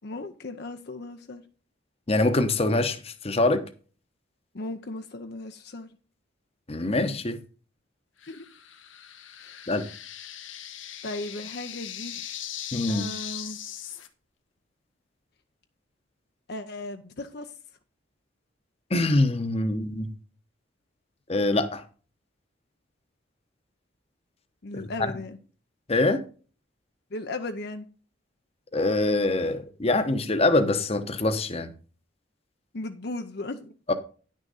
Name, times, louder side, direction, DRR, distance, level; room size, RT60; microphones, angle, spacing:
voice 1, 0.0-1.4 4.5-5.9 8.3-8.5 9.4-9.6 11.0-12.2 12.9-13.6 16.5-17.5 24.6-25.4 27.1-27.9 32.7-33.7, left 2 dB, 55° left, 0.7 m, -36 dB
voice 2, 2.1-3.6 6.7-7.4 9.7-9.8 12.7-13.1 18.9-20.1 21.3-21.8 24.7-24.8 25.9-26.2 28.7-31.7 33.9-34.0, left 2 dB, 30° left, 0.9 m, -24 dB
sound 1, 8.2-14.1, left 11 dB, 85° left, 1.1 m, -39 dB
10.5 x 6.4 x 4.0 m
head